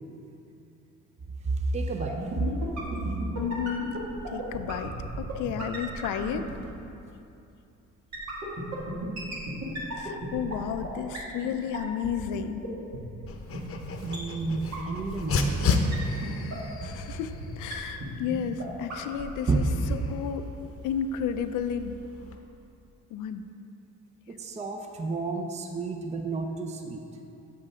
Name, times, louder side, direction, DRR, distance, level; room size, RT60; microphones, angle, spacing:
voice 1, 1.4-2.2 14.0-15.7 19.5-19.6 24.3-27.0, right 3 dB, 25° right, 4 dB, 0.6 m, -30 dB
sound 1, 2.0-6.6 8.1-10.9 11.1-11.2 11.4-11.5 11.7-11.8 12.0-12.1 12.3-12.4 12.6-12.7 12.9-13.0 13.2-13.3 13.5-13.6 13.8-13.9 14.1-14.2 14.4-14.5 14.7-14.8 15.0-15.3 15.6-15.7 15.9-16.0 16.2-16.3 16.5-16.6 16.8-16.9 17.1-17.2 17.4-17.5 17.7-17.8 18.0-18.1 18.3-18.4 18.6-18.7 18.9-19.2 19.5-19.6 19.8-19.9, right 2 dB, 65° right, 2.0 m, -35 dB
voice 2, 3.3-4.0 4.3-6.5 10.0-12.7 16.8-20.5 20.8-22.0 23.1-23.4, left 8 dB, 90° left, 10 dB, 0.5 m, -32 dB
Dog, 13.3-22.4, left 4 dB, 45° left, 0.8 m, -34 dB
7.9 x 7.6 x 3.6 m, 2.7 s
cardioid pair, 90°, 30 cm